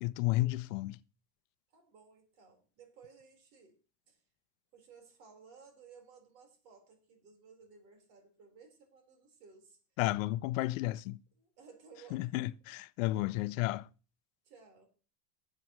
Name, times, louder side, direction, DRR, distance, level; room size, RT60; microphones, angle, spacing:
voice 1, 0.0-1.0 10.0-11.2 12.1-13.9, left 17 dB, 55° left, 0.6 m, -32 dB
voice 2, 1.7-3.8 4.1-4.2 4.7-9.8 11.4-12.5 14.4-14.9, right 5 dB, 75° right, 4.5 m, -58 dB
18.5 x 7.7 x 3.1 m
supercardioid pair, 165°, 49 cm